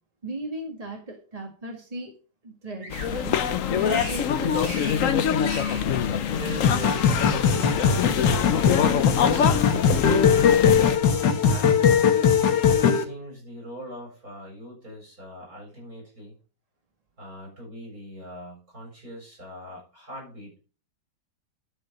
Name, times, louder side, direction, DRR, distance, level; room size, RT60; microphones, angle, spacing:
voice 1, 0.2-2.1 2.4-3.4 3.7-4.7, right 1 dB, 20° right, 1 dB, 1.9 m, -36 dB
Bird vocalization bird call bird song, 2.8-3.2 3.8-4.3 4.5-5.0 5.3-5.9 6.9-7.9 8.6-9.1 9.3-9.8 10.3-10.7, right 2 dB, 80° right, 4.2 m, -41 dB
sound 1, 2.9-11.0, left 8 dB, 60° left, 1.0 m, -25 dB
voice 2, 6.3-12.1 12.8-16.4 17.2-20.6, equal, 55° right, -2 dB, 8.1 m, -41 dB
sound 2, 6.6-13.0, left 7 dB, 80° left, 1.9 m, -20 dB
12.0 x 6.8 x 5.3 m, 0.37 s
omnidirectional pair, 1.9 m